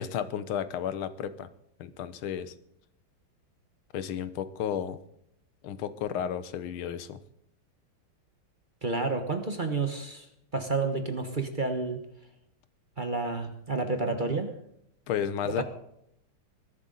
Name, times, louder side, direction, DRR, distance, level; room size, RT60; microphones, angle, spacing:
voice 1, 0.0-1.5 1.8-2.5 3.9-5.0 5.6-7.2 15.1-15.6, left 9 dB, 80° left, 13 dB, 1.7 m, -32 dB
voice 2, 8.8-10.3 10.5-12.0 13.0-14.5 15.5-15.6, right 3 dB, 30° right, 6 dB, 1.1 m, -30 dB
21.0 x 12.0 x 3.9 m, 0.75 s
omnidirectional pair, 2.3 m